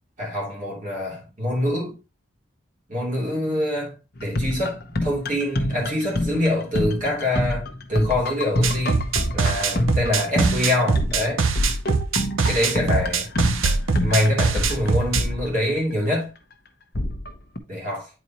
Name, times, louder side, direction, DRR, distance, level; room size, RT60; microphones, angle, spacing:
voice 1, 0.2-1.9 2.9-9.1 9.3-11.4 12.4-13.3 14.0-16.3 17.7-18.1, left 1 dB, 40° right, 2.9 m, -25 dB
sound 1, 4.2-16.1 16.9-17.6, left 1 dB, 50° left, 0.9 m, -27 dB
sound 2, 8.6-15.3, right 5 dB, 85° right, 0.7 m, -22 dB
8.8 x 4.4 x 2.9 m
head